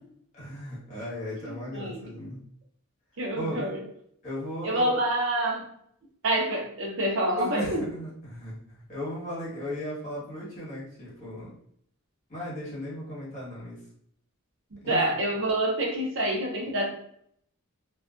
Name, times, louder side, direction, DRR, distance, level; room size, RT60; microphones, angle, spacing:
voice 1, 0.3-2.4 3.3-3.7 4.2-4.9 7.4-8.6 8.9-11.5 12.3-13.8 14.8-15.0, left 1 dB, 35° left, -7 dB, 1.3 m, -36 dB
voice 2, 1.5-2.0 3.2-3.8 4.6-5.7 6.2-7.8 14.9-16.9, right 1 dB, 60° right, -1 dB, 0.6 m, -27 dB
2.3 x 2.2 x 2.4 m, 0.68 s
head